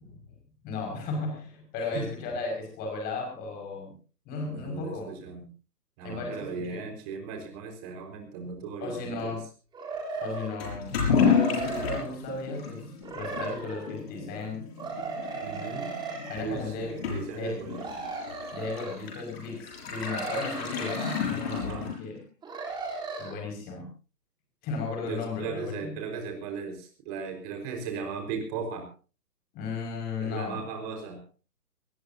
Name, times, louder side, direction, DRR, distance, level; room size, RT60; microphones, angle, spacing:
voice 1, 0.6-3.9 4.3-5.1 6.0-6.9 8.8-9.5 10.2-12.9 13.1-14.7 16.3-17.0 17.3-17.7 18.5-22.2 23.2-23.9 24.6-26.0 29.5-30.6, left 3 dB, 20° left, 2 dB, 5.8 m, -35 dB
voice 2, 4.4-5.5 6.0-9.4 15.4-15.9 16.4-18.1 21.5-21.9 25.1-28.9 30.2-31.2, right 5 dB, 25° right, 4 dB, 4.8 m, -37 dB
sound 1, 9.7-10.6 11.0-12.1 13.0-14.0 14.8-16.4 17.7-19.0 19.9-21.2 22.4-23.3, right 4 dB, 10° right, 3.6 m, -36 dB
Toilet flush / Liquid, 10.6-22.2, left 6 dB, 40° left, 6.9 m, -31 dB
23.5 x 20.0 x 2.8 m, 0.35 s
figure-of-eight pair, 140°, 48 cm